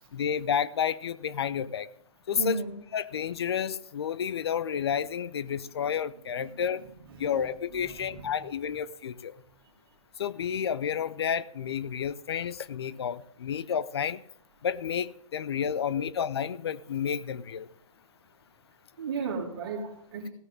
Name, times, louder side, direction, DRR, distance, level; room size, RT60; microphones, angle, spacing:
voice 1, 0.1-1.9 2.3-2.6 2.9-6.8 7.2-9.4 10.2-14.2 14.6-17.7, left 8 dB, 50° left, 0.5 m, -30 dB
voice 2, 2.3-2.8 6.3-8.5 15.9-16.0 19.0-20.3, right 4 dB, 45° right, 2.5 m, -36 dB
16.5 x 6.5 x 7.5 m
figure-of-eight pair, 125°, 17 cm